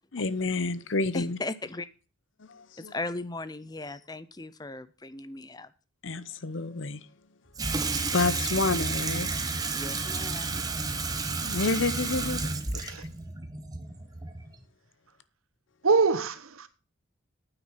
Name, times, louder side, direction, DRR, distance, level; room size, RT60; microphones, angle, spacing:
voice 1, 0.1-1.4 2.4-2.9 6.0-7.1 8.1-9.8 10.8-10.9 11.4-12.5 12.8-13.1, left 3 dB, 65° left, 0.8 m, -30 dB
voice 2, 1.1-1.9 2.8-5.7 9.7-10.6, left 2 dB, 20° left, 0.6 m, -37 dB
Water tap faucet / Sink (filling or washing), 7.6-14.6, right 3 dB, 20° right, 1.1 m, -31 dB
voice 3, 12.7-13.0 15.8-16.7, right 4 dB, 90° right, 1.2 m, -24 dB
9.2 x 9.2 x 5.8 m
head